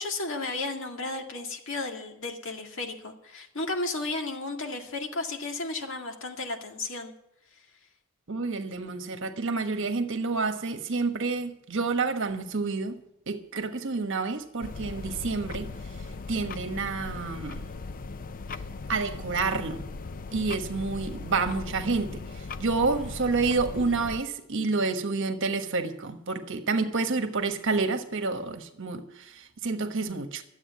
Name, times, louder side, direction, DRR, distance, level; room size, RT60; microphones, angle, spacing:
voice 1, 0.0-7.1, left 2 dB, 65° left, 3 dB, 2.1 m, -33 dB
voice 2, 8.3-13.0 13.3-15.7 16.3-17.7 18.9-19.9 20.3-22.3 22.6-30.4, right 4 dB, 65° right, 7 dB, 1.3 m, -29 dB
sound 1, 14.6-24.2, left 3 dB, 40° left, 0.5 m, -38 dB
12.5 x 8.1 x 9.4 m, 0.78 s
head